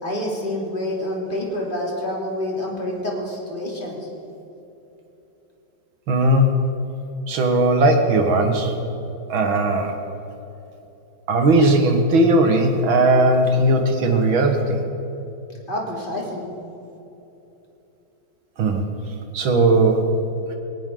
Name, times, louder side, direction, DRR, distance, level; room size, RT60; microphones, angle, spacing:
voice 1, 0.0-4.1 15.7-16.5, left 1 dB, 25° left, -2 dB, 3.2 m, -27 dB
voice 2, 6.1-6.5 7.3-8.7 9.3-9.9 11.3-14.8 18.6-18.8 19.3-20.1, right 2 dB, 80° right, 4 dB, 2.4 m, -17 dB
19.0 x 18.0 x 3.9 m, 3.0 s
omnidirectional pair, 2.2 m